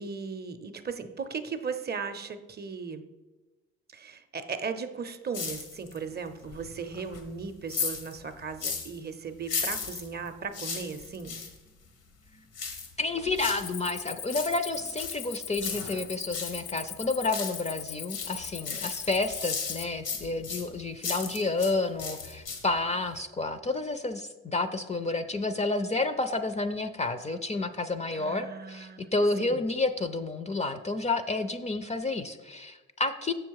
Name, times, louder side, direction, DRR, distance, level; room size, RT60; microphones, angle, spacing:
voice 1, 0.0-3.0 3.9-11.4 28.1-29.1 29.4-29.6, right 5 dB, 35° right, 10 dB, 0.6 m, -37 dB
sound 1, 5.3-6.1 6.4-9.0 9.4-11.6 12.5-13.8 14.1-16.6 17.0-17.8 18.1-21.7 22.0-22.8 23.1-23.2, left 5 dB, 90° left, 1.4 m, -36 dB
voice 2, 13.0-33.3, left 3 dB, 25° left, 10 dB, 0.4 m, -30 dB
Cricket, 13.6-19.8, left 9 dB, 75° left, 0.6 m, -40 dB
7.0 x 6.3 x 4.7 m, 1.2 s
cardioid pair, 90°, 30 cm